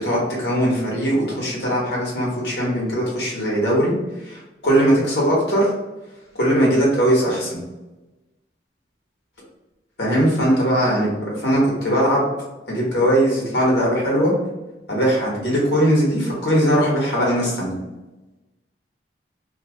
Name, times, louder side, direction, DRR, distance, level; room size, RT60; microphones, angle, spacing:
voice 1, 0.0-3.9 4.3-5.7 6.4-7.6 10.0-12.2 12.7-14.3 14.9-17.7, equal, 65° left, -5 dB, 1.3 m, -20 dB
2.7 x 2.4 x 3.7 m, 1.1 s
head